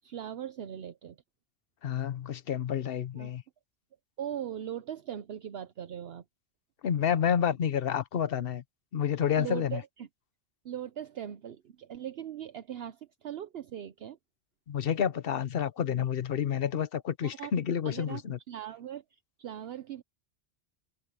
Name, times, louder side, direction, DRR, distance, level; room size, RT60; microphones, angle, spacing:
voice 1, 0.0-1.2 3.1-3.3 4.2-6.2 9.4-10.1 10.6-14.2 17.2-17.5 17.8-20.0, right 10 dB, 65° right, 0.9 m, -40 dB
voice 2, 1.8-3.4 6.8-8.6 8.9-9.8 14.7-18.4, left 8 dB, 60° left, 1.0 m, -29 dB
omnidirectional pair, 1.2 m